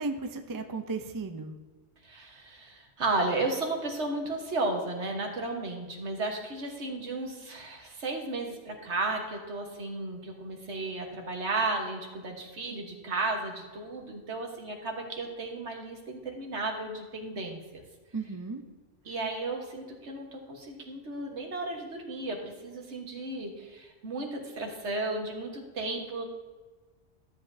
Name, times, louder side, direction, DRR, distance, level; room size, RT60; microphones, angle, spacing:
voice 1, 0.0-1.5 18.1-18.6, right 3 dB, 30° right, 6 dB, 0.4 m, -35 dB
voice 2, 2.0-17.8 19.0-26.2, right 2 dB, 65° right, 2 dB, 1.6 m, -34 dB
13.0 x 7.6 x 2.7 m, 1.3 s
omnidirectional pair, 1.3 m